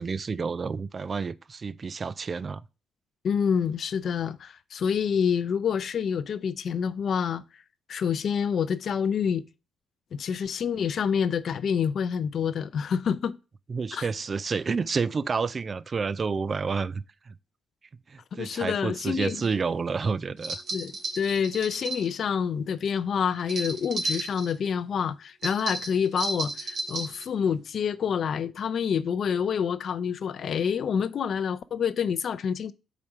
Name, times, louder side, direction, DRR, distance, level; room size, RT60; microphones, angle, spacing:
voice 1, 0.0-2.6 13.7-17.3 18.1-20.6, right 5 dB, 40° right, 0.3 m, -29 dB
voice 2, 3.2-7.4 7.9-9.4 10.1-13.4 13.9-14.1 18.3-19.4 20.7-32.7, left 7 dB, 60° left, 0.5 m, -27 dB
sound 1, 19.2-19.5 20.4-22.1 23.4-24.5 25.4-27.2, right 2 dB, 70° right, 1.8 m, -33 dB
4.9 x 4.2 x 6.0 m
cardioid pair, 90°, 0 cm